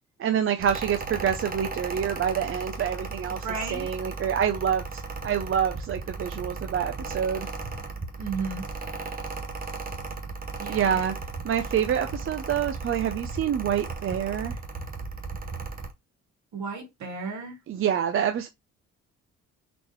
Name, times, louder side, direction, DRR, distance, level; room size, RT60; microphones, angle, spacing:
voice 1, 0.2-7.5 10.7-11.2 11.4-14.6 17.7-18.5, right 8 dB, 45° right, 0.5 m, -27 dB
Mechanical fan, 0.6-15.9, right 3 dB, 30° right, 0.9 m, -36 dB
voice 2, 3.4-3.9 8.2-8.7 10.6-11.0 16.5-17.6, right 4 dB, 70° right, 2.2 m, -33 dB
4.1 x 3.0 x 3.2 m
cardioid pair, 90°, 30 cm